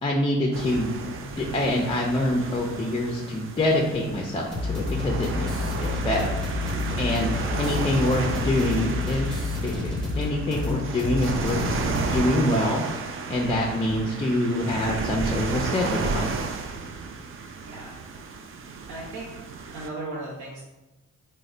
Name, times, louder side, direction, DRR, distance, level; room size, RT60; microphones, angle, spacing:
voice 1, 0.0-6.3 7.0-7.3 7.6-9.7 10.2-11.6 11.9-12.8 13.3-16.5, left 1 dB, 20° left, -1 dB, 0.4 m, -25 dB
sound 1, 0.5-19.9, right 4 dB, 45° right, 0.4 m, -33 dB
sound 2, 4.5-12.2, left 3 dB, ahead, 0.8 m, -29 dB
voice 2, 17.6-17.9 18.9-19.3 19.7-20.6, right 2 dB, 70° right, -6 dB, 0.7 m, -37 dB
3.0 x 2.1 x 3.7 m, 1.0 s
cardioid pair, 90°, 30 cm